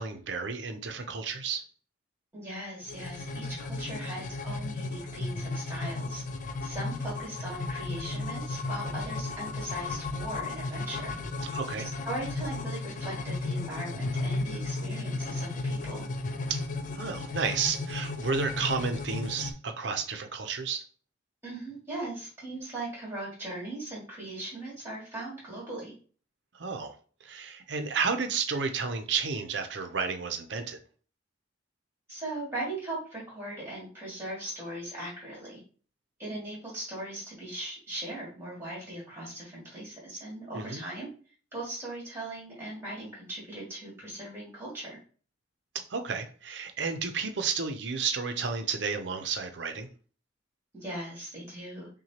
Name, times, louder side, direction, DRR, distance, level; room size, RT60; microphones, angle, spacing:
voice 1, 0.0-1.6 11.5-11.9 16.5-16.6 16.9-20.8 26.5-26.9 27.2-30.8 40.5-40.8 45.9-49.9, right 5 dB, 65° right, 7 dB, 0.6 m, -32 dB
voice 2, 2.3-6.2 6.6-11.1 12.0-16.1 21.4-25.9 32.1-35.6 36.2-41.1 41.5-45.0 50.7-51.9, right 1 dB, 15° right, -5 dB, 2.1 m, -39 dB
sound 1, 2.8-19.5, left 3 dB, 40° left, 0.4 m, -34 dB
5.9 x 2.3 x 2.9 m, 0.40 s
head